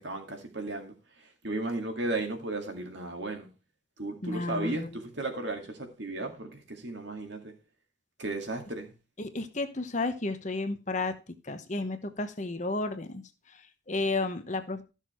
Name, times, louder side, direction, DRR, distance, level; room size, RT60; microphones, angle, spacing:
voice 1, 0.0-3.5 4.0-7.5 8.2-8.9, right 2 dB, 60° right, 2.2 m, -35 dB
voice 2, 4.2-5.0 9.2-11.1 11.4-14.8, left 2 dB, 35° left, 1.0 m, -32 dB
13.0 x 6.5 x 4.4 m
head